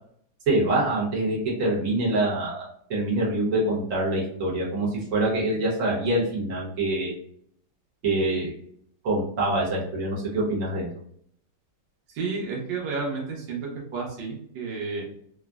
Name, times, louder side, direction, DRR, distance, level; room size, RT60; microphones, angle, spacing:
voice 1, 0.5-7.2 8.0-8.5 9.0-10.9, right 2 dB, 50° right, -4 dB, 1.2 m, -25 dB
voice 2, 12.1-15.1, right 4 dB, 90° right, -2 dB, 1.5 m, -31 dB
3.6 x 2.0 x 2.3 m, 0.65 s
omnidirectional pair, 2.0 m